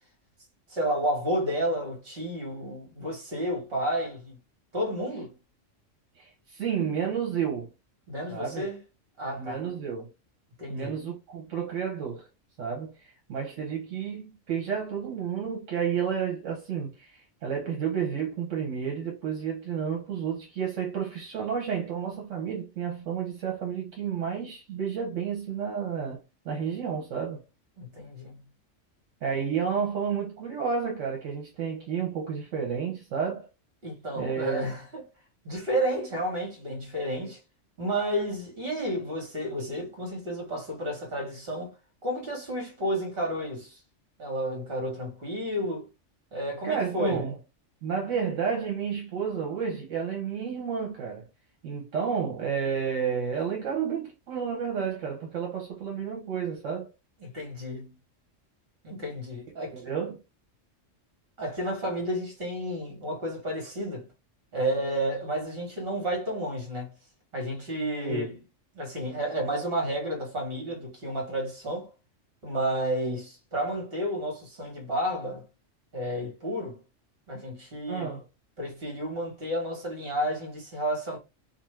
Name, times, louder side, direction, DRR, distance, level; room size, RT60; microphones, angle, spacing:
voice 1, 0.7-4.4 4.7-5.3 8.1-8.8 9.2-9.6 10.6-11.0 27.8-28.4 33.8-35.1 35.4-37.4 37.8-41.7 42.0-43.8 44.2-45.9 46.3-47.3 57.2-58.0 58.8-59.9 61.4-64.1 64.5-66.9 67.3-68.4 68.7-71.9 72.4-75.4 75.9-76.8 77.3-78.1 78.6-81.2, right 1 dB, 50° right, 1.4 m, -31 dB
voice 2, 6.2-7.7 8.3-8.7 9.4-10.1 10.7-12.2 12.6-27.4 29.2-33.5 34.2-34.6 46.6-47.4 47.8-51.3 51.6-56.9 59.7-60.2 68.0-68.2 77.9-78.2, right 7 dB, 75° right, 1.1 m, -31 dB
2.6 x 2.3 x 3.1 m
omnidirectional pair, 1.3 m